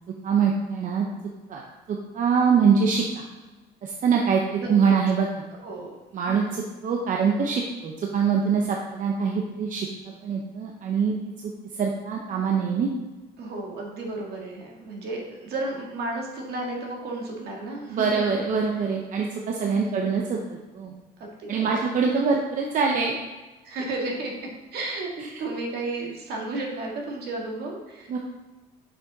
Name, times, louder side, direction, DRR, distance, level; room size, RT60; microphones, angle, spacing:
voice 1, 0.2-1.1 1.5-1.6 1.9-3.2 3.8-5.3 6.1-6.4 6.8-9.9 10.2-11.1 11.7-12.9 17.9-20.9 21.5-23.2 28.1-28.2, right 6 dB, 50° right, 0 dB, 0.7 m, -24 dB
voice 2, 4.6-4.9 5.6-5.9 6.3-6.5 13.4-18.2 19.7-20.0 21.2-21.8 23.6-28.2, right 2 dB, 70° right, -1 dB, 1.7 m, -33 dB
6.2 x 5.0 x 4.0 m, 1.2 s
cardioid pair, 110°, 17 cm